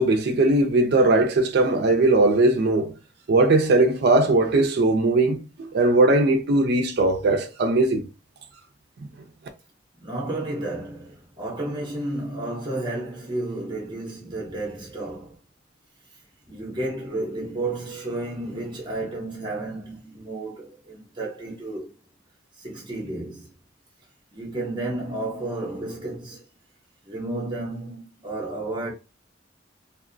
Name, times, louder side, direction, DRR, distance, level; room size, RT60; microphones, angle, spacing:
voice 1, 0.0-2.9 3.3-8.0, right 2 dB, 55° right, 0.4 m, -19 dB
voice 2, 10.0-15.4 16.1-16.2 16.5-21.9 22.6-23.5 24.3-26.4 27.0-28.9, right 2 dB, 25° right, 0.6 m, -32 dB
2.8 x 2.0 x 2.5 m
head